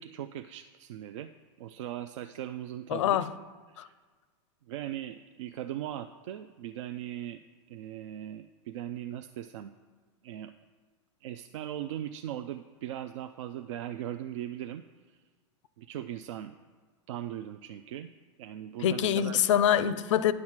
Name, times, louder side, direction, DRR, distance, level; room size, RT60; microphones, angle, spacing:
voice 1, 0.0-1.3 1.6-3.2 3.7-3.9 4.7-7.4 7.7-9.7 10.2-10.5 11.2-15.2 15.8-16.5 17.1-18.1 18.4-19.5, right 11 dB, 80° right, 0.4 m, -39 dB
voice 2, 2.9-3.3 3.8-3.9 18.8-20.3, left 10 dB, 80° left, 0.5 m, -25 dB
9.6 x 4.7 x 7.3 m
supercardioid pair, 125°, 16 cm